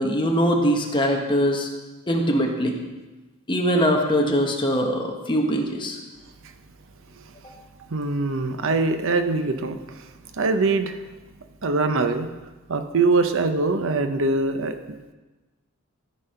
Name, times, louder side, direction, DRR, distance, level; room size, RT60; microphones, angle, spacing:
voice 1, 0.0-1.7 2.1-2.8 3.5-6.0, equal, 25° left, 1 dB, 1.3 m, -22 dB
voice 2, 7.8-10.1 10.3-11.0 11.6-12.3 12.7-15.1, right 3 dB, 65° right, 8 dB, 0.7 m, -23 dB
13.5 x 5.4 x 5.6 m, 1.2 s
head